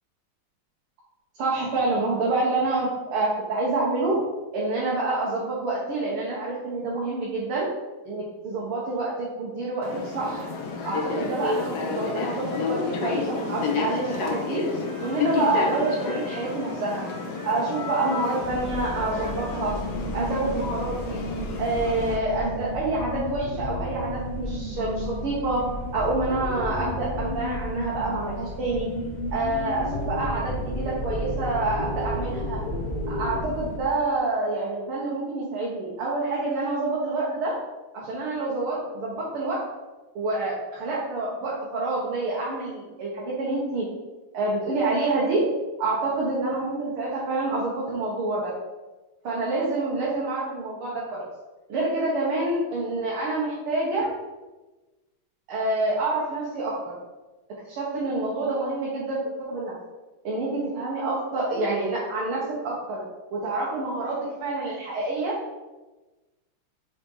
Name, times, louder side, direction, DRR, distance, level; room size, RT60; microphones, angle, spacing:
voice 1, 1.4-4.2 4.5-7.7 8.1-10.5 10.8-14.6 15.0-17.0 17.4-19.8 20.1-21.2 21.6-25.6 25.9-28.9 29.3-32.6 33.1-37.6 37.9-39.6 40.2-43.9 44.3-45.4 45.8-48.5 49.2-51.2 51.7-54.2 55.5-56.8 57.7-59.2 59.5-59.7 60.2-63.0 63.3-65.4, right 2 dB, 80° right, -5 dB, 2.3 m, -27 dB
sound 1, 9.8-22.2, left 4 dB, 55° left, 1.4 m, -31 dB
sound 2, 13.8-19.4, left 2 dB, 15° right, 1.7 m, -41 dB
sound 3, 18.4-33.8, left 1 dB, 80° left, 0.4 m, -32 dB
6.0 x 5.1 x 5.5 m, 1.1 s
omnidirectional pair, 2.3 m